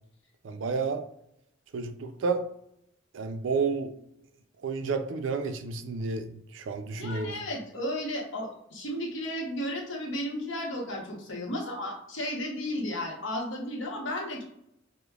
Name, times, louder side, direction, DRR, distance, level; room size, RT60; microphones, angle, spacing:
voice 1, 0.4-1.0 1.7-2.4 3.1-3.9 4.6-6.3 6.5-7.4, right 4 dB, 75° right, 8 dB, 0.4 m, -30 dB
voice 2, 7.0-14.4, left 1 dB, 75° left, -1 dB, 1.0 m, -34 dB
5.0 x 2.1 x 2.3 m, 0.77 s
head